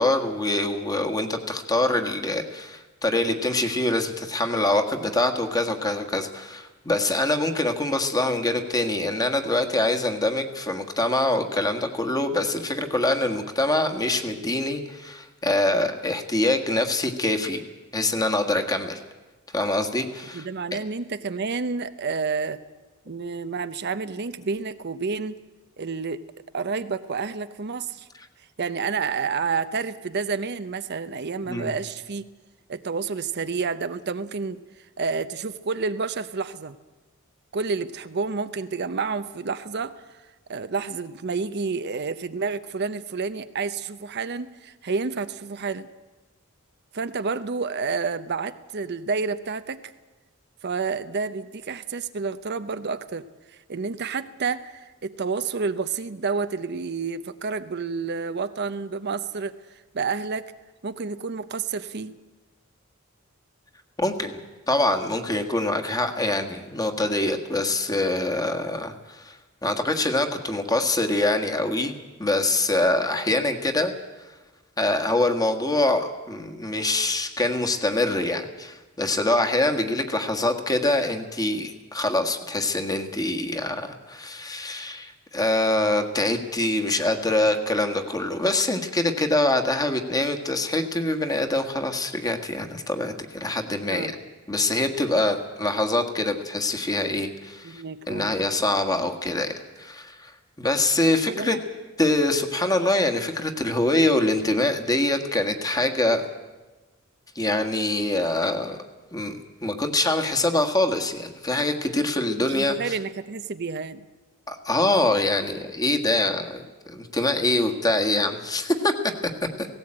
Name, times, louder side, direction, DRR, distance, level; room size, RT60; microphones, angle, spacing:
voice 1, 0.0-17.6 17.9-19.0 19.5-20.5 31.5-31.7 64.0-64.4 64.7-69.4 69.6-73.9 74.8-94.1 94.5-99.5 99.8-100.3 100.6-101.6 102.0-106.2 107.3-108.8 109.1-112.9 114.5-118.9 119.6-119.7, left 2 dB, 20° left, 6 dB, 1.6 m, -24 dB
voice 2, 20.3-22.6 23.1-25.4 25.8-26.2 26.5-28.1 28.6-32.3 32.7-34.6 35.0-36.8 37.5-39.9 40.5-45.9 46.9-49.8 50.6-59.6 59.9-60.5 60.8-62.2 93.9-94.1 97.6-98.3 101.3-101.6 112.4-114.0, right 4 dB, 55° right, 11 dB, 0.7 m, -29 dB
17.5 x 17.0 x 8.8 m, 1.2 s
head